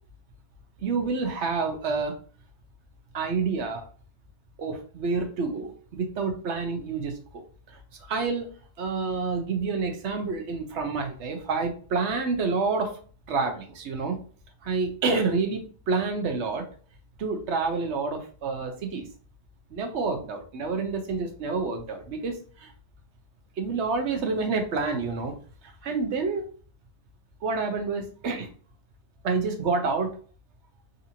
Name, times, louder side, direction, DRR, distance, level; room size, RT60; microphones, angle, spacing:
voice 1, 0.8-2.1 3.1-3.9 4.6-7.4 8.1-8.5 8.8-12.9 13.3-14.2 14.6-16.7 17.2-19.1 19.7-22.7 23.6-25.3 25.8-26.5 27.4-28.5 29.2-30.2, right 4 dB, 65° right, 5 dB, 1.0 m, -28 dB
3.9 x 2.6 x 2.7 m, 0.42 s
omnidirectional pair, 1.3 m